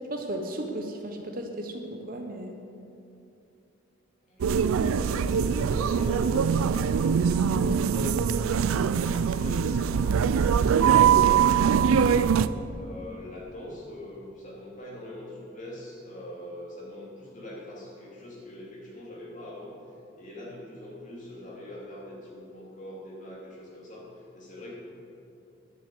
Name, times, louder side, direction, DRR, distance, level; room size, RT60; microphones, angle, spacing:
voice 1, 0.1-2.6, right 1 dB, 45° right, 3 dB, 0.8 m, -35 dB
voice 2, 4.3-12.2 12.7-19.8 20.1-24.7, left 1 dB, 35° left, -4 dB, 2.6 m, -42 dB
sound 1, 4.4-12.5, right 7 dB, 85° right, 0.4 m, -22 dB
snare violin, 4.6-13.3, equal, 15° right, 2.7 m, -50 dB
sound 2, 5.2-11.8, left 4 dB, 85° left, 1.5 m, -49 dB
11.0 x 6.8 x 8.3 m, 2.7 s
head